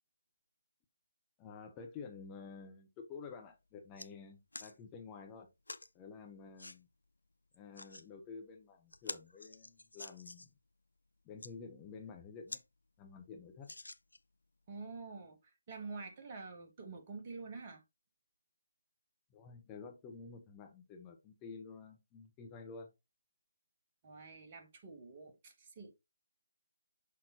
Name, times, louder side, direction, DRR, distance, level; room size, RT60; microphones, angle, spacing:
voice 1, 1.4-5.5 5.9-6.9 7.5-10.5 11.2-12.6 13.0-13.7 19.3-22.9, left 5 dB, 15° left, 0.9 m, -50 dB
sound 1, 3.3-3.4 3.7-4.1 4.5-4.7 5.7-5.9 6.6-6.8 7.5-8.1 8.5-8.6 8.9-10.6 11.2-11.5 12.1-12.2 12.5-12.7 13.0-13.1 13.6-14.3 15.0-15.1, left 2 dB, 75° left, 0.5 m, -48 dB
voice 2, 14.7-17.8 24.0-25.9, right 4 dB, 30° right, 1.6 m, -48 dB
6.6 x 5.6 x 2.9 m
figure-of-eight pair, 150°, 0 cm